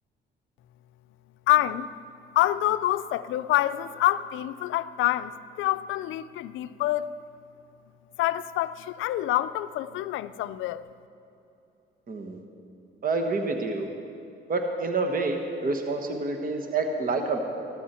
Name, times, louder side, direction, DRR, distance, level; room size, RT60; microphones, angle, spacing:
voice 1, 1.5-1.9 2.4-7.1 8.2-10.9, left 14 dB, 80° left, 0.5 m, -26 dB
voice 2, 12.1-12.4 13.0-13.8 14.5-17.4, right 3 dB, 45° right, 1.3 m, -28 dB
14.0 x 13.0 x 4.3 m
cardioid pair, 90°, 20 cm